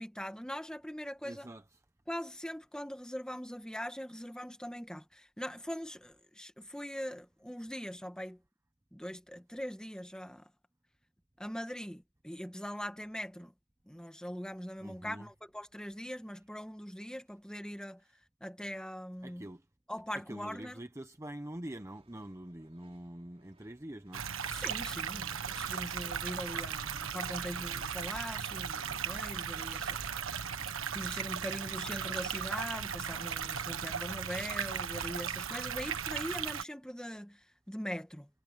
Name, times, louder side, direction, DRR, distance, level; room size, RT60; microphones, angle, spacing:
voice 1, 0.0-1.5 2.1-8.4 8.9-10.5 11.4-13.5 13.9-18.0 18.4-19.5 19.9-20.8 24.5-30.0 30.9-38.3, equal, 5° left, 1.8 m, -41 dB
voice 2, 1.2-1.8 14.8-15.3 19.2-19.6 20.1-24.3, right 1 dB, 15° right, 0.8 m, -45 dB
sound 1, 21.8-30.4, right 2 dB, 30° right, 6.3 m, -68 dB
sound 2, 24.1-36.6, right 7 dB, 90° right, 1.5 m, -37 dB
head